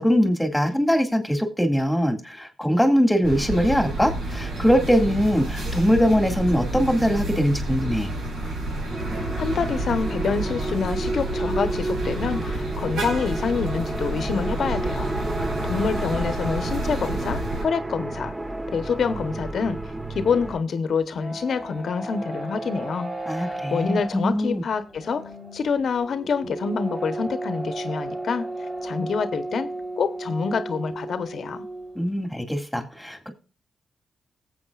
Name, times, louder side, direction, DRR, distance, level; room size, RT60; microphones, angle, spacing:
voice 1, 0.0-8.1 23.3-24.6 32.0-33.3, equal, 5° left, 2.1 m, -22 dB
sound 1, 3.2-17.6, right 1 dB, 85° right, 4.7 m, -29 dB
sound 2, 8.9-20.6, right 2 dB, 20° right, 1.1 m, -31 dB
voice 2, 9.2-15.1 15.4-18.3 18.7-23.1 23.4-28.5 28.8-29.7 30.0-31.7, left 5 dB, 65° left, 0.9 m, -27 dB
sound 3, 20.9-32.1, right 2 dB, 35° right, 5.2 m, -34 dB
19.0 x 7.7 x 2.4 m
cardioid pair, 80°, 0 cm